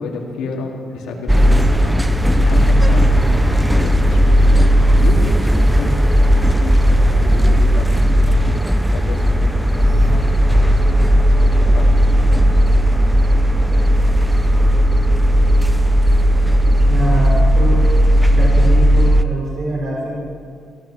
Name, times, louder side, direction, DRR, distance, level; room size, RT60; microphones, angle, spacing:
voice 1, 0.0-6.1 6.4-8.6 8.9-12.1, left 3 dB, 90° left, -1 dB, 2.5 m, -31 dB
sound 1, 1.3-19.2, equal, 5° right, 0.7 m, -14 dB
voice 2, 16.9-17.8 18.3-20.1, equal, 50° right, -4 dB, 5.4 m, -23 dB
16.5 x 12.5 x 6.3 m, 2.1 s
cardioid pair, 90°, 0 cm